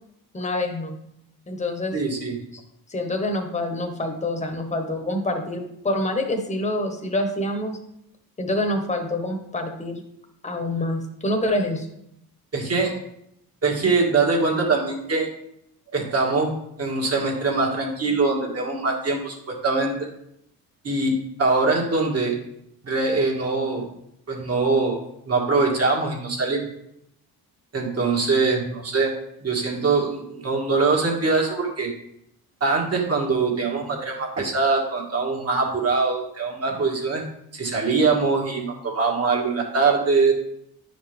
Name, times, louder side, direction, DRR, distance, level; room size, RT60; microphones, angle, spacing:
voice 1, 0.3-0.9 1.5-2.0 2.5-2.6 2.9-7.8 8.4-10.0 10.4-11.9, left 1 dB, 20° left, 3 dB, 1.2 m, -26 dB
voice 2, 1.9-2.4 12.5-12.9 13.6-15.3 15.9-19.9 20.8-21.1 21.4-22.4 22.8-23.8 24.3-26.7 27.7-29.1 29.4-31.9 32.6-37.2 37.5-40.3, right 4 dB, 40° right, -1 dB, 2.1 m, -23 dB
10.0 x 5.0 x 3.5 m, 0.77 s
cardioid pair, 95°, 36 cm